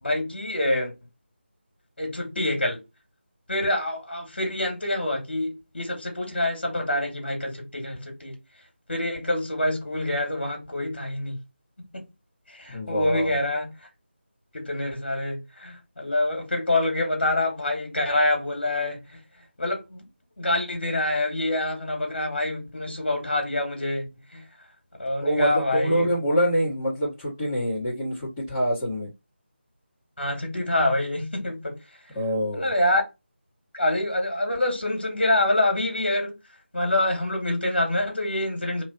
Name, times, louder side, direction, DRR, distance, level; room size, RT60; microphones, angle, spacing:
voice 1, 0.0-0.9 2.0-2.8 3.5-8.3 8.9-11.4 11.9-12.1 12.5-13.7 14.5-19.2 19.6-20.0 20.4-24.4 25.0-26.1 30.2-31.8 32.5-33.0 33.7-36.4 36.7-38.8, left 1 dB, 60° left, 2.2 m, -26 dB
voice 2, 12.7-13.3 25.2-29.1 32.2-32.7, equal, 15° left, 1.7 m, -25 dB
3.6 x 3.2 x 4.3 m
figure-of-eight pair, 160°, 6 cm